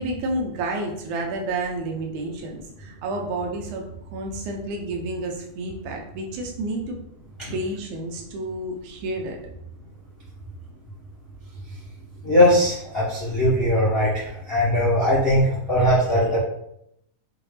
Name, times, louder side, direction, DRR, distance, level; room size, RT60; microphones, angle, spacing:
voice 1, 0.0-7.0 7.5-9.4, right 2 dB, 80° right, 1 dB, 2.2 m, -30 dB
voice 2, 12.2-16.4, left 1 dB, 85° left, -8 dB, 0.5 m, -20 dB
6.0 x 2.6 x 3.3 m, 0.78 s
omnidirectional pair, 3.6 m